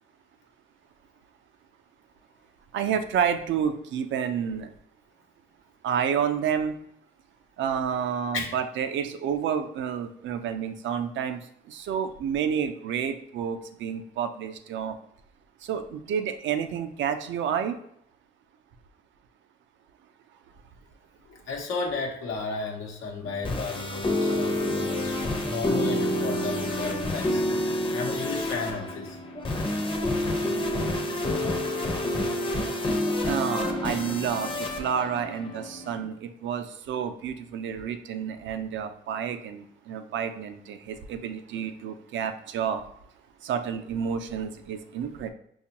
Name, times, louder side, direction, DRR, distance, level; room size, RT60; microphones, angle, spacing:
voice 1, 2.7-4.7 5.8-6.8 7.6-11.4 11.7-15.0 15.6-17.8 33.2-42.8 43.4-45.3, right 8 dB, 70° right, 8 dB, 0.5 m, -29 dB
voice 2, 21.2-25.1 25.4-27.4 27.9-29.2, left 4 dB, 90° left, 0 dB, 0.9 m, -33 dB
sound 1, 23.2-36.0, left 1 dB, 25° left, 0.6 m, -28 dB
5.1 x 2.3 x 2.8 m, 0.71 s
cardioid pair, 90°, 20 cm